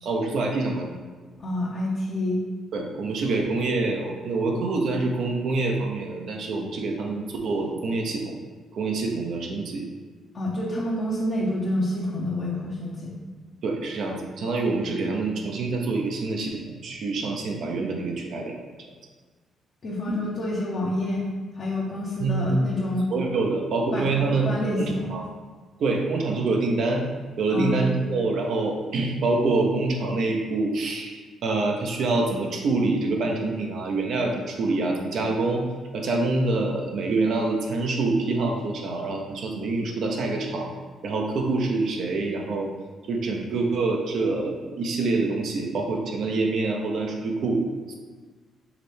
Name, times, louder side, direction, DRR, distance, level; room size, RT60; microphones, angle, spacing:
voice 1, 0.0-0.9 2.7-8.3 8.7-9.9 13.6-18.6 20.1-20.2 22.2-22.7 23.1-24.4 24.7-25.2 25.8-27.0 27.4-35.7 35.9-40.7 41.0-42.7 43.1-47.6 47.9-48.0, right 3 dB, 65° right, 1 dB, 0.7 m, -26 dB
voice 2, 1.4-2.4 10.3-13.2 19.8-21.3 21.5-23.1 23.9-25.2 27.5-27.8, left 1 dB, 50° left, -6 dB, 0.8 m, -28 dB
4.9 x 3.2 x 3.3 m, 1.4 s
cardioid pair, 90°, 0 cm